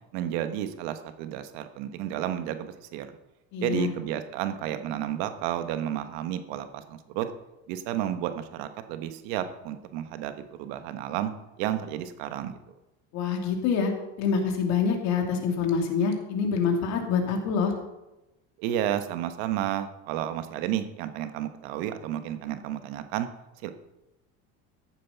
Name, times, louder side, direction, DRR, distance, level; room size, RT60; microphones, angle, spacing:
voice 1, 0.1-3.1 3.6-7.3 7.7-10.3 10.6-11.3 11.6-12.6 18.6-23.3 23.6-23.7, right 11 dB, 80° right, 9 dB, 1.3 m, -31 dB
voice 2, 3.5-3.9 13.1-13.9 14.2-17.7, left 6 dB, 60° left, 3 dB, 2.6 m, -26 dB
14.0 x 7.7 x 5.8 m, 0.97 s
cardioid pair, 145°, 31 cm